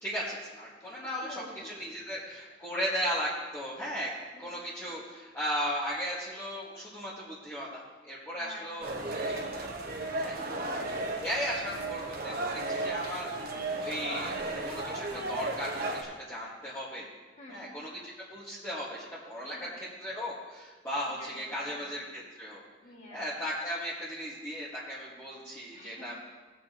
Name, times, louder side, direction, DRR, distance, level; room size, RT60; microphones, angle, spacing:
voice 1, 0.0-4.1 4.4-8.9 9.3-9.7 10.1-10.4 11.2-12.4 12.7-13.3 13.8-14.4 14.6-17.1 17.5-22.6 23.1-26.1, equal, 15° left, -10 dB, 1.8 m, -36 dB
voice 2, 1.2-1.7 4.3-4.4 8.4-8.8 10.4-11.2 15.1-15.4 17.4-17.7 19.4-19.7 21.1-21.4 21.6-22.0 22.8-23.3 25.7-26.1, left 1 dB, 40° left, -2 dB, 2.2 m, -48 dB
sound 1, 8.8-16.0, right 2 dB, 55° right, 1.2 m, -34 dB
18.5 x 7.6 x 3.0 m, 1.3 s
head